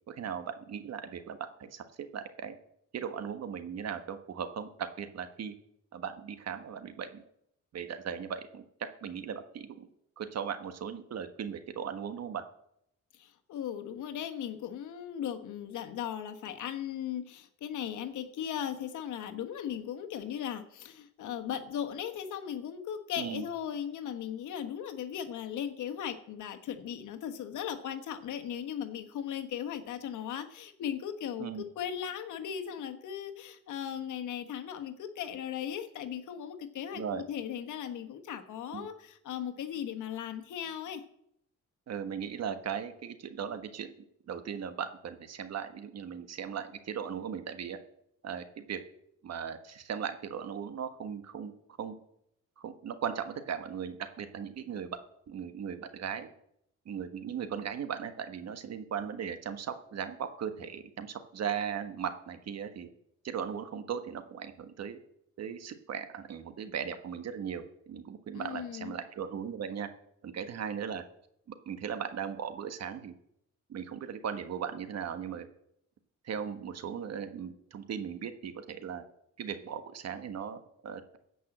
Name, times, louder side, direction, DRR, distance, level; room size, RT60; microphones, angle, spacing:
voice 1, 0.1-2.6 2.9-5.5 5.9-7.2 7.7-8.6 9.0-9.9 10.2-12.4 23.2-23.5 31.4-31.6 36.9-37.2 38.7-38.9 41.9-43.9 44.3-47.8 48.2-48.8 49.2-51.5 51.8-51.9 52.6-55.0 55.3-56.3 56.8-62.9 63.2-65.0 65.4-69.9 70.2-71.0 71.7-73.1 73.7-75.5 76.2-79.0 79.4-81.2, right 7 dB, 60° right, 9 dB, 1.4 m, -38 dB
voice 2, 13.1-41.0 68.3-68.9, left 9 dB, 80° left, 7 dB, 1.3 m, -37 dB
15.5 x 5.5 x 7.7 m, 0.75 s
cardioid pair, 90°, 30 cm